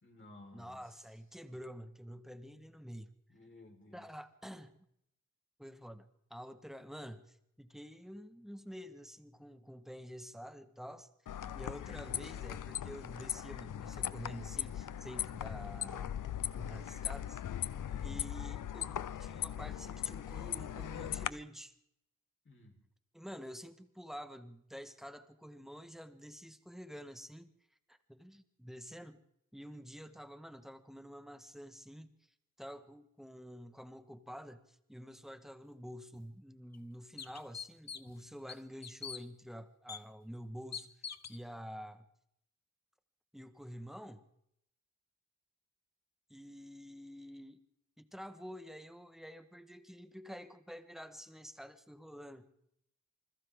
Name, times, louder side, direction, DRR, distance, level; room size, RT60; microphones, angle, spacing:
voice 1, 0.0-1.0 1.4-1.6 3.3-4.1 17.8-18.2 22.4-22.8, left 2 dB, 40° left, 1 dB, 4.2 m, -56 dB
voice 2, 0.5-3.1 3.9-4.8 5.6-11.1 11.5-16.1 16.5-17.4 18.0-21.7 23.1-27.5 27.9-29.2 29.5-32.1 32.6-42.0 43.3-44.2 46.3-47.6 48.0-52.5, equal, ahead, 8 dB, 1.4 m, -49 dB
sound 1, 11.3-21.3, left 10 dB, 75° left, 0.7 m, -39 dB
sound 2, 36.1-36.2 36.7-36.8 37.2-38.2 38.5-39.2 39.9-40.0 40.7-41.4, left 7 dB, 55° left, 1.2 m, -43 dB
28.5 x 25.5 x 3.7 m, 0.76 s
wide cardioid pair, 170°, 32 cm